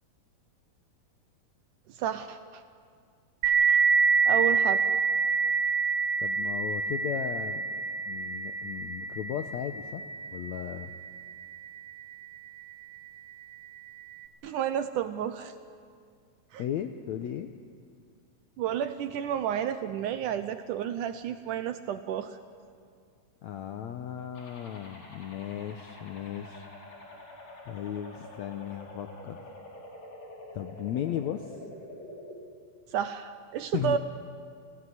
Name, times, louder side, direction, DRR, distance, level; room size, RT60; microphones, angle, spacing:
voice 1, 1.9-2.6 3.5-3.8 4.3-4.8 14.4-15.5 16.5-16.6 18.6-22.4 32.9-34.0, right 9 dB, 75° right, 10 dB, 2.0 m, -31 dB
sound 1, 3.4-12.7, right 5 dB, 50° right, 2.2 m, -28 dB
voice 2, 6.2-7.6 8.1-10.0 10.3-10.9 16.6-17.5 23.4-26.7 27.6-29.5 30.5-31.6 33.7-34.0, left 10 dB, 80° left, 7 dB, 1.6 m, -36 dB
sound 2, 24.3-32.3, left 1 dB, 60° left, 5.7 m, -47 dB
29.0 x 17.0 x 9.8 m, 2.2 s
omnidirectional pair, 4.3 m